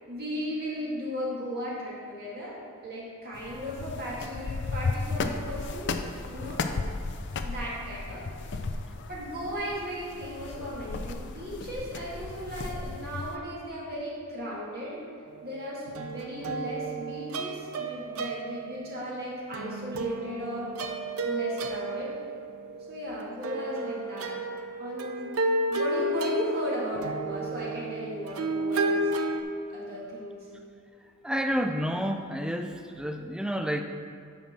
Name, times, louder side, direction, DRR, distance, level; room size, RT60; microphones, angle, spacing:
voice 1, 0.1-2.5 2.8-5.9 6.3-6.7 7.4-8.2 9.1-15.0 15.4-20.8 21.2-22.2 22.9-24.4 24.8-25.4 25.7-29.1 29.7-30.5, equal, 45° right, -6 dB, 1.8 m, -36 dB
sound 1, 3.3-13.4, left 3 dB, 55° left, 0.5 m, -35 dB
sound 2, 15.3-15.6 15.9-19.0 19.5-29.4, right 2 dB, 80° right, 0.6 m, -32 dB
voice 2, 31.2-33.8, equal, 5° right, 6 dB, 0.4 m, -29 dB
9.2 x 6.0 x 4.2 m, 2.3 s
head